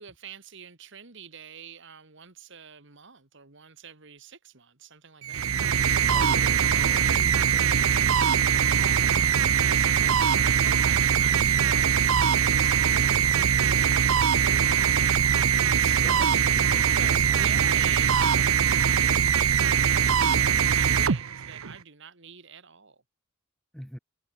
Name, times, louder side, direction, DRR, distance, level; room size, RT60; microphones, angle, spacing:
voice 1, 0.0-5.5 8.7-16.5 16.8-23.0, right 6 dB, 60° right, 2.0 m, -45 dB
sound 1, 5.2-21.8, right 8 dB, 85° right, 0.8 m, -22 dB
voice 2, 6.1-8.2 16.0-17.6 23.7-24.0, equal, ahead, 4.4 m, -44 dB
head